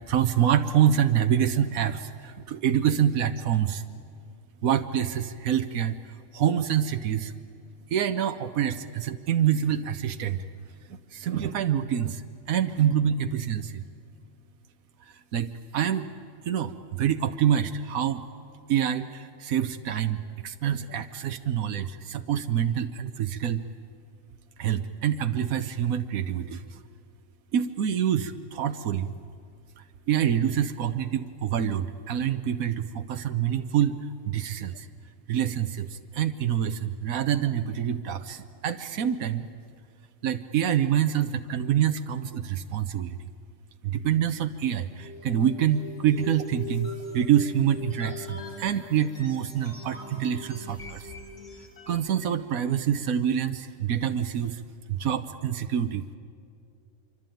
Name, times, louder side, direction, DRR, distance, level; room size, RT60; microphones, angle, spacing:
voice 1, 0.1-3.8 4.6-7.3 7.9-10.4 10.9-13.8 15.3-16.1 16.4-18.2 18.7-23.6 24.6-26.8 27.5-29.1 30.1-34.0 34.2-34.9 35.3-39.5 40.2-43.2 43.8-46.9 47.1-51.1 51.9-54.6 54.9-56.2, right 9 dB, 90° right, 8 dB, 1.3 m, -26 dB
sound 1, 45.0-52.1, left 4 dB, 35° left, 4.0 m, -41 dB
25.5 x 24.5 x 9.1 m, 2.4 s
omnidirectional pair, 1.4 m